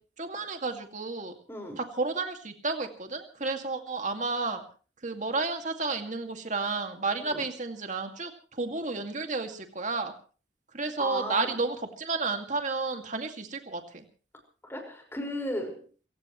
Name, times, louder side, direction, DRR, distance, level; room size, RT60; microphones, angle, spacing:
voice 1, 0.2-1.3 1.8-4.6 5.0-10.1 10.7-14.0, right 3 dB, 45° right, 5 dB, 2.2 m, -32 dB
voice 2, 1.5-1.8 7.3-7.4 11.0-11.6 14.6-15.8, left 1 dB, 15° left, 3 dB, 5.3 m, -35 dB
27.5 x 16.5 x 3.2 m, 0.39 s
head